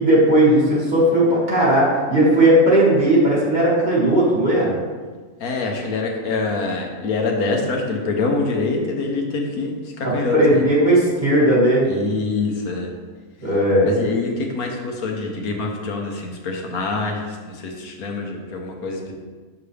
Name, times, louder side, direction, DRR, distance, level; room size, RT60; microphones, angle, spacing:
voice 1, 0.0-4.7 10.0-11.9 13.4-14.0, right 1 dB, 30° right, -8 dB, 2.3 m, -16 dB
voice 2, 5.4-10.6 11.8-12.9 13.9-19.1, left 3 dB, 90° left, 1 dB, 1.5 m, -25 dB
7.2 x 6.1 x 3.4 m, 1.4 s
omnidirectional pair, 1.5 m